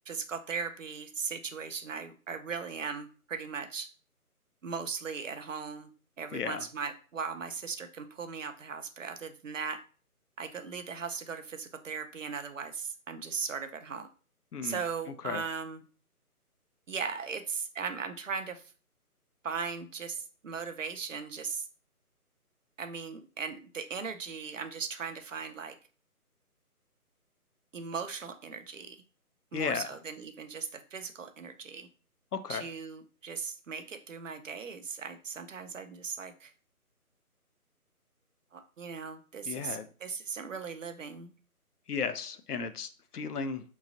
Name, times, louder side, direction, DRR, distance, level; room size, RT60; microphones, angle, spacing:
voice 1, 0.1-3.9 4.6-5.9 6.2-9.8 10.4-14.1 14.6-15.8 16.9-18.6 19.4-21.6 22.8-25.8 27.7-29.0 29.5-31.9 32.5-36.5 38.5-41.3, right 5 dB, 55° right, 8 dB, 0.6 m, -38 dB
voice 2, 6.3-6.6 14.5-14.8 15.2-15.4 29.5-29.9 32.3-32.7 39.5-39.9 41.9-43.6, left 6 dB, 80° left, 10 dB, 0.6 m, -34 dB
5.2 x 3.1 x 2.5 m, 0.37 s
figure-of-eight pair, 155°, 45 cm